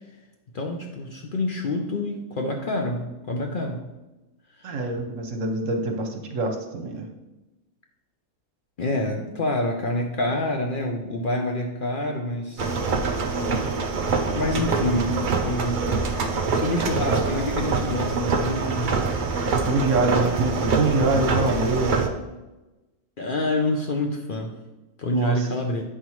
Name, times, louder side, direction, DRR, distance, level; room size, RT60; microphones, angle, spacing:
voice 1, 0.5-3.9 4.6-4.8 8.8-12.8 14.3-15.8 16.2-19.1 23.2-24.5 25.0-25.8, left 2 dB, 60° left, 2 dB, 0.5 m, -27 dB
voice 2, 4.6-7.0 19.5-22.1 25.1-25.4, right 2 dB, 60° right, 3 dB, 1.1 m, -25 dB
sound 1, 12.6-22.1, right 4 dB, 85° right, 0.4 m, -25 dB
8.2 x 5.5 x 3.1 m, 1.1 s
omnidirectional pair, 1.7 m